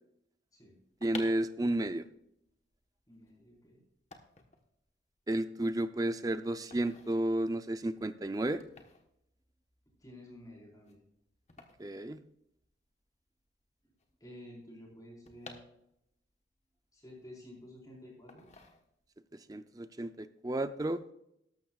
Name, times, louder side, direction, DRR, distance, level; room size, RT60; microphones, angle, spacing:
sound 1, 0.8-12.9 13.2-13.3 13.4-16.3 16.7-17.7 18.3-19.3 19.6-19.9, left 3 dB, 35° left, 1.1 m, -53 dB
voice 1, 1.0-2.1 5.3-8.6 11.8-12.2 19.5-21.0, right 1 dB, 20° right, 11 dB, 0.5 m, -32 dB
voice 2, 3.1-3.8 10.0-11.0 14.2-15.6 16.9-18.5, left 1 dB, 20° left, -2 dB, 4.3 m, -51 dB
13.0 x 12.0 x 2.4 m, 0.78 s
head